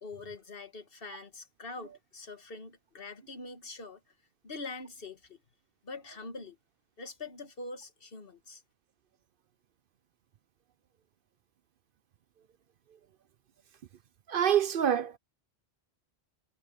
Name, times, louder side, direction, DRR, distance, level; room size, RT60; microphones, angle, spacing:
voice 1, 0.0-4.0 4.4-5.4 5.8-6.6 7.0-8.6, left 3 dB, 60° left, 1.9 m, -44 dB
voice 2, 14.3-15.2, right 9 dB, 60° right, 0.7 m, -26 dB
omnidirectional pair, 1.1 m